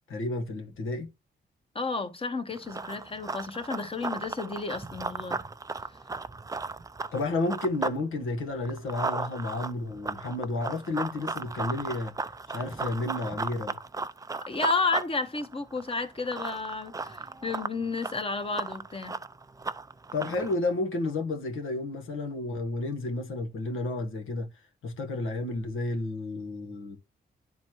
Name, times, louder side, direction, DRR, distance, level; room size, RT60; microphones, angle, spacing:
voice 1, 0.1-1.1 7.1-12.1 12.5-13.8 20.1-24.5 24.8-27.0, left 2 dB, 80° left, 1.3 m, -31 dB
voice 2, 1.7-5.4 14.5-19.1, left 3 dB, 25° left, 1.0 m, -32 dB
Run, 2.5-8.0 8.3-20.6, right 3 dB, 15° right, 0.4 m, -36 dB
10.5 x 4.1 x 3.0 m
cardioid pair, 90°, 21 cm